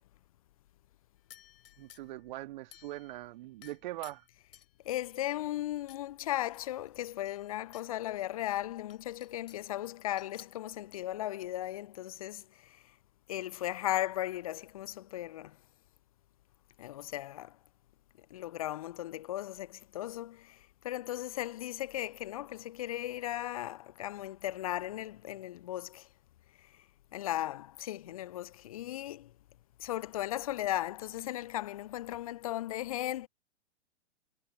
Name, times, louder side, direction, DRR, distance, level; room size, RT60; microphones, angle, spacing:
sound 1, 1.3-2.2 2.7-3.2 3.6-5.1 5.9-6.0 6.4-7.9 8.3-8.4 8.9-9.7 10.2-11.0, left 10 dB, 55° left, 7.6 m, -56 dB
voice 1, 1.8-4.2, right 16 dB, 40° right, 1.6 m, -42 dB
voice 2, 4.9-12.4 13.3-15.5 16.8-17.5 18.3-20.6 20.8-26.0 27.1-29.3 29.8-33.3, left 14 dB, 30° left, 0.5 m, -36 dB
figure-of-eight pair, 115°, 35 cm